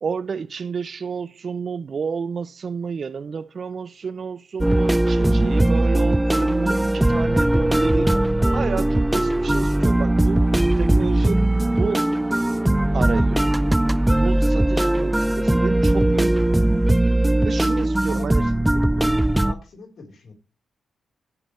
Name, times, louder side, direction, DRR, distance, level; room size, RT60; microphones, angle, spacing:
voice 1, 0.0-8.2 8.5-10.5 10.8-12.1 12.9-13.6 14.2-16.6 17.4-18.5, right 6 dB, 55° right, 0.5 m, -30 dB
sound 1, 4.6-19.5, right 1 dB, 10° right, 0.6 m, -19 dB
voice 2, 18.1-19.2 19.4-20.3, left 4 dB, 65° left, 3.8 m, -42 dB
15.5 x 5.8 x 3.2 m
supercardioid pair, 60°, 0 cm